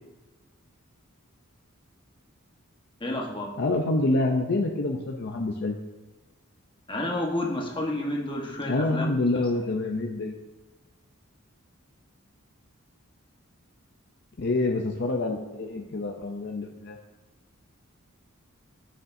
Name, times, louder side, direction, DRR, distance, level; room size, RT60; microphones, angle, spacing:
voice 1, 3.0-3.5 6.9-9.4, left 1 dB, 25° left, -1 dB, 1.2 m, -30 dB
voice 2, 3.6-5.8 8.7-10.3 14.4-17.0, left 2 dB, 50° left, 2 dB, 0.6 m, -27 dB
9.2 x 6.7 x 2.7 m, 1.1 s
head